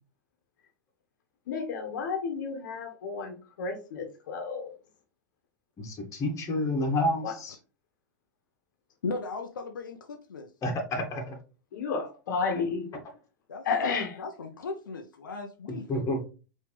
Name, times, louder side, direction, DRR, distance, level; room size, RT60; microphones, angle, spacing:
voice 1, 1.5-4.7 7.2-7.3 11.7-12.9 13.6-14.1, left 5 dB, 70° left, 1.2 m, -32 dB
voice 2, 5.8-7.6 10.6-11.4 15.9-16.2, left 1 dB, 30° left, 1.8 m, -29 dB
voice 3, 9.0-10.5 13.5-13.9 14.2-15.9, left 3 dB, 90° left, 0.6 m, -37 dB
5.0 x 3.2 x 3.2 m
hypercardioid pair, 105°, 10 cm